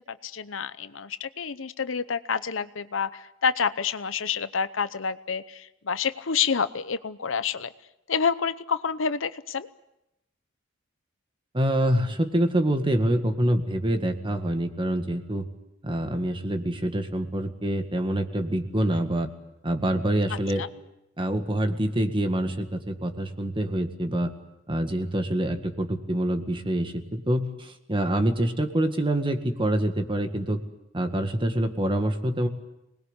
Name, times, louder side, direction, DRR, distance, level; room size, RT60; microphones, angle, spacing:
voice 1, 0.0-7.7 8.1-9.7 20.3-20.7, left 6 dB, 75° left, 14 dB, 0.8 m, -28 dB
voice 2, 11.5-15.5 15.8-19.3 19.6-20.7 21.2-24.3 24.7-30.6 30.9-32.5, right 1 dB, 25° right, 7 dB, 1.8 m, -26 dB
25.5 x 20.0 x 8.2 m, 0.89 s
head